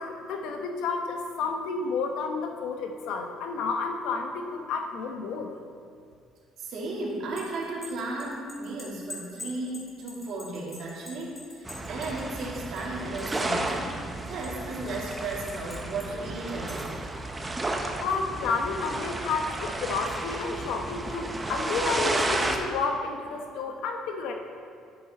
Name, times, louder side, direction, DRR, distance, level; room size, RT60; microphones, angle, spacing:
voice 1, 0.0-5.5 18.0-24.3, left 4 dB, 80° left, 4 dB, 1.0 m, -31 dB
voice 2, 6.6-13.9 14.3-17.0, right 2 dB, 60° right, -4 dB, 2.4 m, -35 dB
sound 1, 7.1-13.4 13.7-14.9 15.5-16.1 16.5-17.0, left 1 dB, 25° left, 2.1 m, -45 dB
sound 2, 11.6-22.6, right 2 dB, 15° right, 0.7 m, -32 dB
11.0 x 7.0 x 4.2 m, 2.2 s
cardioid pair, 135°, 0 cm